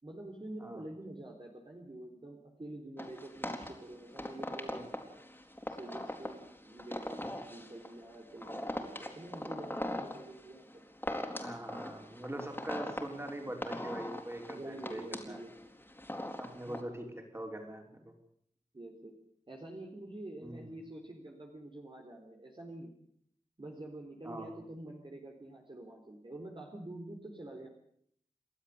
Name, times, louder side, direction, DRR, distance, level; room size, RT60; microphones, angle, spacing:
voice 1, 0.0-4.9 5.7-10.8 14.5-15.5 16.7-16.8 18.7-19.1 19.5-23.0 23.6-27.7, right 1 dB, 40° right, 1 dB, 3.9 m, -47 dB
sound 1, 3.0-16.8, left 1 dB, 15° left, 3.8 m, -41 dB
voice 2, 11.4-15.4 16.4-18.1 20.4-20.7 24.2-24.5, right 1 dB, 20° right, 3 dB, 5.3 m, -43 dB
29.5 x 12.5 x 8.5 m, 0.66 s
wide cardioid pair, 75°, 13 cm